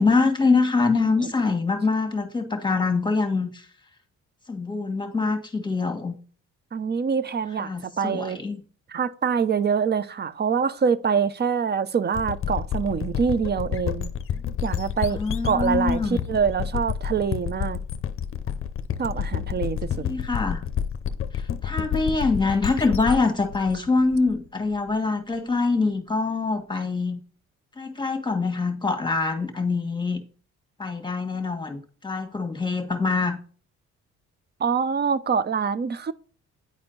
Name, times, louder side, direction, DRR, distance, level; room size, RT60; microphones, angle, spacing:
voice 1, 0.0-3.6 4.5-6.2 7.6-8.6 15.1-16.2 20.0-20.6 21.3-27.2 27.8-30.2 30.8-33.4, left 4 dB, 15° left, 1.5 m, -24 dB
voice 2, 6.7-8.4 8.9-14.1 14.6-17.8 19.0-20.1 34.6-36.1, right 6 dB, 35° right, 0.6 m, -25 dB
sound 1, 12.1-24.8, left 8 dB, 45° left, 0.6 m, -29 dB
9.6 x 4.4 x 3.9 m
cardioid pair, 90°, 30 cm